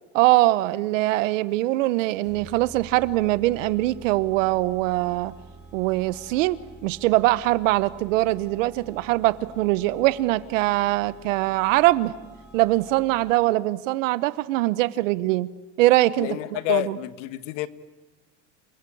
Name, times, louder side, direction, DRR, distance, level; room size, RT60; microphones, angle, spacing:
voice 1, 0.1-5.3 5.7-6.6 6.8-12.1 12.5-15.5 15.8-16.3 16.7-17.0, right 17 dB, 80° right, 1.1 m, -22 dB
sound 1, 2.2-13.6, right 3 dB, ahead, 6.8 m, -48 dB
voice 2, 16.2-17.7, left 16 dB, 70° left, 1.4 m, -28 dB
28.5 x 20.5 x 8.7 m
supercardioid pair, 165°, 38 cm